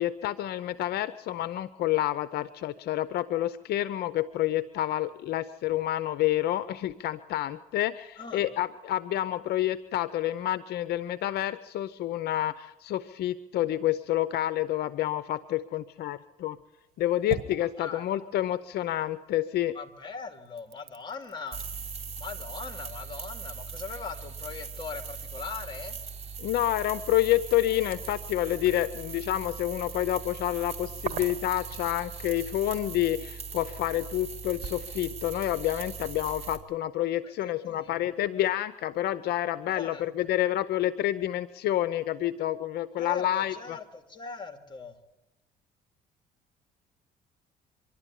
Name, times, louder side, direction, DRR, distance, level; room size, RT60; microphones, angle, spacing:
voice 1, 0.0-16.6 17.0-19.8 26.4-43.8, left 13 dB, 70° left, 15 dB, 0.7 m, -28 dB
sound 1, 16.7-19.4 19.7-33.0, right 9 dB, 65° right, 1.7 m, -47 dB
voice 2, 19.7-21.6 22.2-25.9 37.4-38.0 39.7-40.1 43.0-44.9, left 5 dB, 25° left, 7 dB, 2.6 m, -40 dB
sound 2, 21.5-36.6, right 5 dB, 40° right, 2.9 m, -40 dB
25.0 x 12.0 x 9.9 m, 0.96 s
cardioid pair, 110°, 17 cm